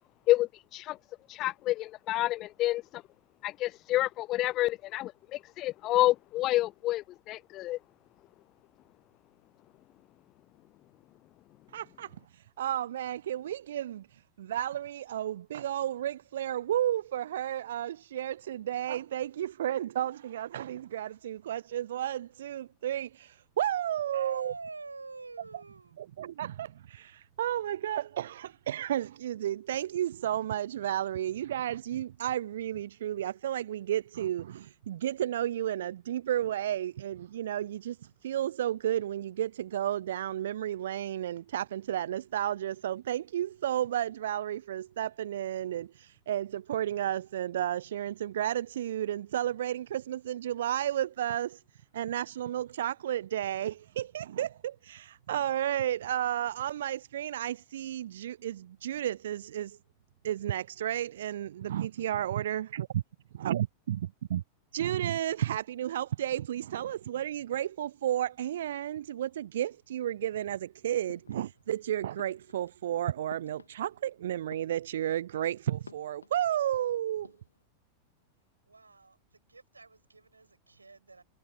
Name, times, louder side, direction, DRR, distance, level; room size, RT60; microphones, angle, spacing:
voice 1, 0.3-1.0 1.3-3.0 3.4-7.8, left 16 dB, 35° left, 0.5 m, -29 dB
voice 2, 11.7-12.2 12.6-14.1 14.4-24.5 25.5-25.6 26.0-38.0 38.2-51.6 51.9-59.8 60.2-63.0 63.4-64.0 64.3-64.4 64.7-77.3, right 11 dB, 60° right, 0.7 m, -32 dB
voice 3, 23.9-26.0 78.7-79.2 79.5-81.2, right 3 dB, 80° right, 6.8 m, -45 dB
sound 1, 71.1-71.8 72.1-74.1 74.4-75.2 75.8-76.8 77.1-77.6, left 4 dB, 75° left, 3.2 m, -53 dB
figure-of-eight pair, 90°, 0 cm